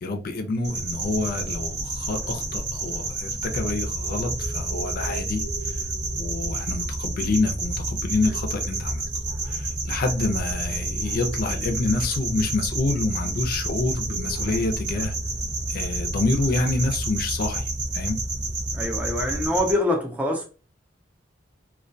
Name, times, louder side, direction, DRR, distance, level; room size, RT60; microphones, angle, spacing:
voice 1, 0.0-5.4 6.1-9.0 9.5-15.1 15.7-18.2, left 3 dB, 50° left, 0.4 m, -27 dB
sound 1, 0.6-19.7, right 3 dB, 65° right, 0.9 m, -31 dB
sound 2, 3.4-19.5, right 1 dB, 40° right, 0.8 m, -34 dB
voice 2, 18.7-20.5, left 1 dB, 10° right, 0.4 m, -24 dB
2.2 x 2.2 x 2.5 m
head